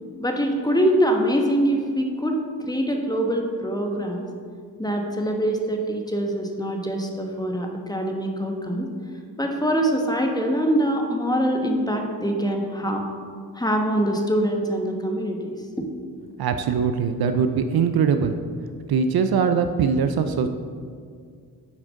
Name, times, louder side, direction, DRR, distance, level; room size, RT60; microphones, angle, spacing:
voice 1, 0.2-4.2 4.8-8.9 9.4-13.0 13.5-15.6, equal, 10° left, 2 dB, 1.2 m, -24 dB
voice 2, 16.4-18.4 18.9-20.5, right 6 dB, 60° right, 8 dB, 0.6 m, -21 dB
7.2 x 4.5 x 5.3 m, 2.1 s
supercardioid pair, 45°, 42 cm